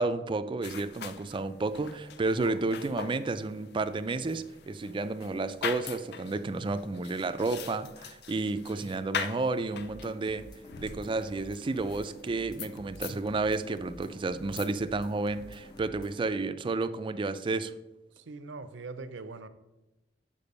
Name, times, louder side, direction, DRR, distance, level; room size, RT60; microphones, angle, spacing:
voice 1, 0.0-10.5 10.8-17.7, right 3 dB, 25° right, 0.4 m, -31 dB
sound 1, 0.6-15.9, left 7 dB, 65° left, 0.4 m, -43 dB
voice 2, 8.5-8.9 13.1-13.3 18.1-19.5, right 3 dB, 85° right, 0.6 m, -43 dB
sound 2, 9.7-16.2, equal, 25° left, 0.7 m, -50 dB
6.8 x 5.3 x 5.3 m
head